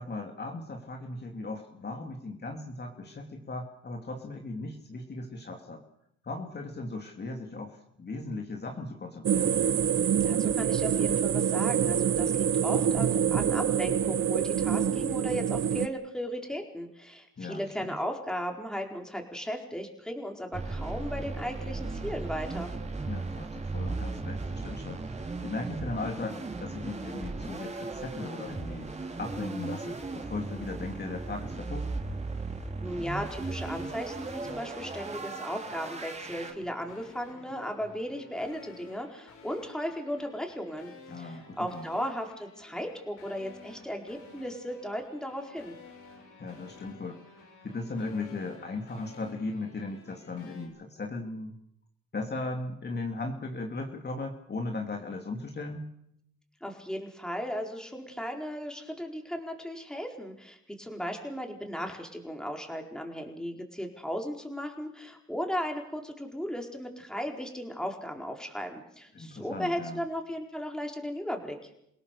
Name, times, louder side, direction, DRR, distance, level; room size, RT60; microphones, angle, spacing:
voice 1, 0.0-5.8 6.2-9.6 17.4-17.9 23.1-28.9 29.2-31.9 41.1-41.9 46.4-51.6 52.1-55.9 69.1-70.0, left 3 dB, 35° left, 2 dB, 2.9 m, -37 dB
sound 1, 9.2-15.9, right 8 dB, 45° right, 0.9 m, -26 dB
voice 2, 10.2-22.7 32.8-40.9 41.2-45.7 56.6-71.7, equal, ahead, 2 dB, 4.6 m, -36 dB
sound 2, 20.5-36.5, right 3 dB, 20° right, 3.4 m, -37 dB
sound 3, 33.3-50.7, left 4 dB, 85° left, 7.0 m, -52 dB
28.0 x 17.5 x 6.9 m, 0.77 s
cardioid pair, 90°, 30 cm